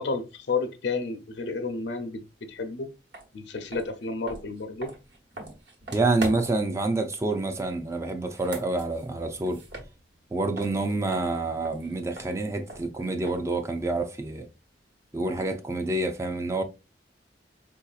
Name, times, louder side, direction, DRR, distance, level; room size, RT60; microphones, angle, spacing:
voice 1, 0.0-2.9 3.3-4.9, left 4 dB, 65° left, 0.6 m, -31 dB
sound 1, 3.1-3.3 3.7-6.7 8.2-10.3 10.6-13.6, right 2 dB, 65° right, 1.1 m, -41 dB
voice 2, 5.9-9.6 10.3-14.5 15.1-16.6, right 2 dB, 15° right, 0.3 m, -27 dB
4.6 x 2.7 x 2.3 m
head